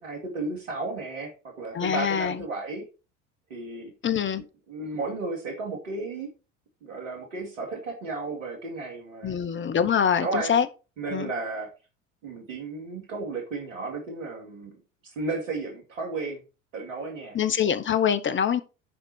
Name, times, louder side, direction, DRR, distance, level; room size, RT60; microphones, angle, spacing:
voice 1, 0.0-2.8 3.5-3.9 4.3-6.3 6.8-9.3 10.2-10.5 11.0-11.7 12.2-14.8 15.0-16.4 16.7-17.4, right 3 dB, 80° right, 2.6 m, -33 dB
voice 2, 1.7-2.4 4.0-4.4 9.2-10.7 11.1-11.3 17.3-18.6, left 8 dB, 30° left, 1.1 m, -24 dB
11.0 x 4.1 x 4.4 m
hypercardioid pair, 70°, 38 cm